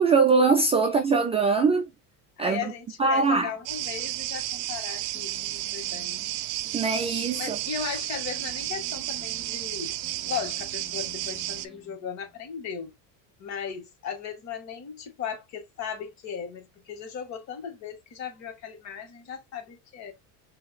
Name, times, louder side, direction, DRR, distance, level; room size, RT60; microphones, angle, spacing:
voice 1, 0.0-1.9 2.4-2.7 3.0-3.5 6.7-7.6, right 4 dB, 15° right, 0.4 m, -22 dB
voice 2, 2.4-6.3 7.4-10.0 10.2-12.9 13.4-20.1, left 7 dB, 50° left, 2.0 m, -37 dB
sound 1, 3.7-11.7, right 15 dB, 65° right, 0.6 m, -32 dB
sound 2, 5.1-12.5, equal, ahead, 3.0 m, -52 dB
5.9 x 2.9 x 2.3 m
cardioid pair, 155°, 37 cm